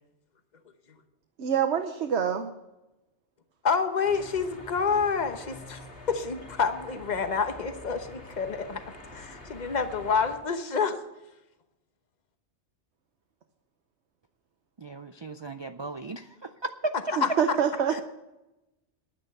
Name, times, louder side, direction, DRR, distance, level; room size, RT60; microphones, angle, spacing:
voice 1, 1.4-2.5 17.2-18.0, right 8 dB, 70° right, 6 dB, 1.1 m, -26 dB
voice 2, 3.6-5.8 6.1-8.8 9.1-11.0 17.2-17.3 17.9-18.0, left 5 dB, 40° left, 8 dB, 1.1 m, -28 dB
sound 1, 4.0-10.4, left 2 dB, 70° left, 2.9 m, -46 dB
voice 3, 14.8-16.9, right 2 dB, 40° right, 8 dB, 0.4 m, -36 dB
10.5 x 9.7 x 6.6 m, 0.96 s
omnidirectional pair, 1.2 m